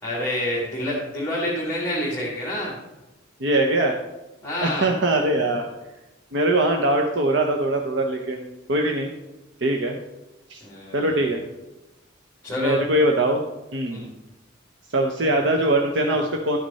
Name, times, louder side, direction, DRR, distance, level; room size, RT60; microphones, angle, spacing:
voice 1, 0.0-2.8 4.4-4.9 10.6-11.2 12.4-12.8 13.9-14.1, left 1 dB, 10° left, -6 dB, 2.1 m, -28 dB
voice 2, 3.4-3.9 4.6-5.7 6.3-9.1 9.6-10.0 10.5-10.6 10.9-11.4 12.6-13.4 13.7-14.0 14.9-16.6, right 1 dB, 70° right, 2 dB, 0.8 m, -22 dB
12.5 x 6.4 x 4.2 m, 1.0 s
head